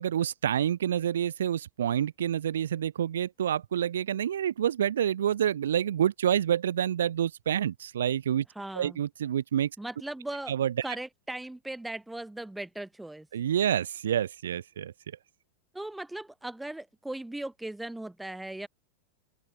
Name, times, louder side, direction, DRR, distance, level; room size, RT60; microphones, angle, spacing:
voice 1, 0.0-8.4 8.7-9.7 10.5-10.8 13.3-14.9, right 10 dB, 65° right, 1.6 m, -28 dB
voice 2, 8.6-9.0 9.8-10.5 10.8-13.3 15.7-18.7, right 1 dB, 5° right, 6.0 m, -38 dB
open air
figure-of-eight pair, 90°, 0 cm